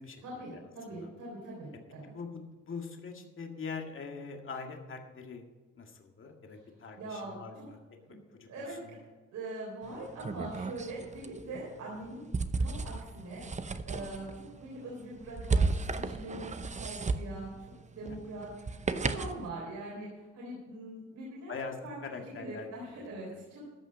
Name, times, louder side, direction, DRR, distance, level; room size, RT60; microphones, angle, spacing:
voice 1, 0.2-2.1 7.0-7.6 8.0-8.2 8.5-9.0 9.3-12.3 12.6-13.5 13.8-17.7 17.9-21.5 21.8-22.0 22.4-23.7, right 2 dB, 75° right, -4 dB, 3.9 m, -42 dB
voice 2, 2.1-5.5 5.8-7.8 8.4-9.0 14.0-14.4 18.0-18.2 21.5-22.7 23.3-23.4, left 4 dB, 45° left, 2 dB, 1.9 m, -43 dB
sound 1, 9.8-19.5, right 4 dB, 25° right, 0.7 m, -35 dB
14.0 x 5.6 x 7.5 m, 1.3 s
cardioid pair, 90°, 30 cm